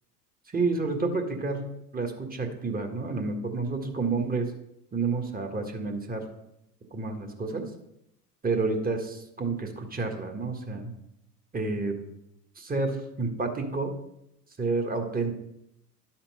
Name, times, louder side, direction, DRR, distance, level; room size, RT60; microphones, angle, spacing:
voice 1, 0.5-4.5 4.9-6.2 6.9-7.6 8.4-10.9 11.5-11.9 12.5-13.9 14.6-15.4, right 3 dB, 20° right, 4 dB, 1.7 m, -29 dB
12.0 x 4.4 x 5.5 m, 0.81 s
hypercardioid pair, 80°, 49 cm